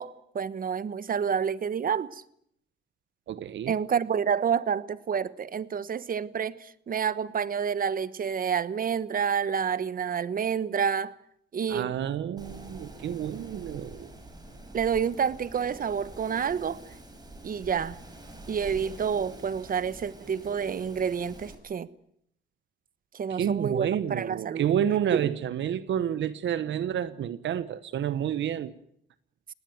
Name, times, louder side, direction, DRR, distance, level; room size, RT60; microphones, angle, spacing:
voice 1, 0.0-2.2 3.7-11.1 11.5-11.9 14.7-16.8 17.4-18.0 18.5-21.9 23.1-24.7 25.1-25.2, right 7 dB, 45° right, 1.2 m, -29 dB
voice 2, 3.3-3.7 11.7-14.1 23.3-28.7, right 9 dB, 70° right, 1.2 m, -29 dB
Wind, 12.4-21.5, right 1 dB, 20° right, 6.3 m, -46 dB
19.5 x 18.5 x 9.3 m
cardioid pair, 90°, 20 cm